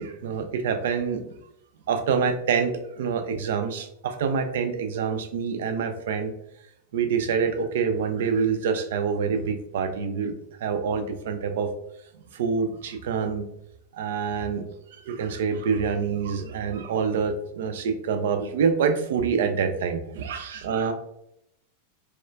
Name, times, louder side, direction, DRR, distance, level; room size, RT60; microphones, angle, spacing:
voice 1, 0.0-1.3 1.9-6.3 6.9-10.3 10.6-11.7 12.3-13.4 13.9-14.6 14.9-20.9, right 6 dB, 60° right, 8 dB, 0.3 m, -26 dB
4.1 x 2.3 x 2.4 m, 0.80 s
figure-of-eight pair, 90°, 0 cm